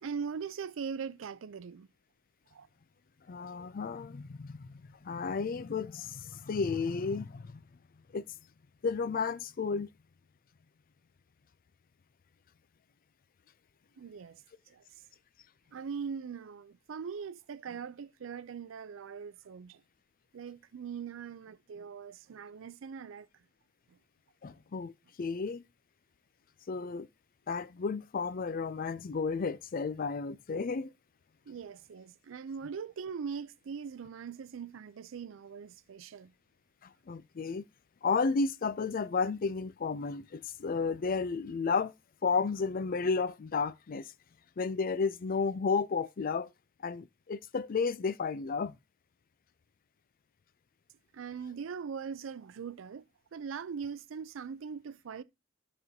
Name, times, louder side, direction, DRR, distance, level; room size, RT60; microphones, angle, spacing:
voice 1, 0.0-1.9 2.5-2.7 14.0-14.4 14.7-14.8 15.7-19.8 20.3-23.3 23.9-24.0 24.4-24.6 31.5-36.3 51.1-53.1 53.3-55.2, right 6 dB, 80° right, 0.4 m, -41 dB
voice 2, 3.3-7.6 8.1-8.2 8.8-9.9 24.4-25.6 26.7-27.1 27.5-30.9 36.8-37.6 38.0-41.9 42.2-44.1 44.6-46.5 46.8-48.8, left 4 dB, 45° left, 0.4 m, -32 dB
13.5 x 5.4 x 2.7 m
head